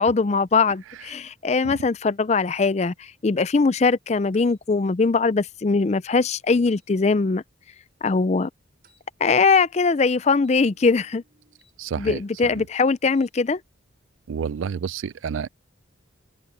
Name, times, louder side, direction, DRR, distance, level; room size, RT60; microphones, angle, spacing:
voice 1, 0.0-7.4 8.0-8.5 9.2-11.2 12.0-13.6, left 4 dB, 35° left, 0.4 m, -21 dB
sound 1, 4.3-4.6 6.7-6.9 8.8-9.1 10.4-11.8 13.0-13.4, right 2 dB, 50° right, 7.9 m, -60 dB
voice 2, 11.8-12.2 12.5-12.7 14.3-15.5, right 6 dB, 80° right, 0.4 m, -29 dB
head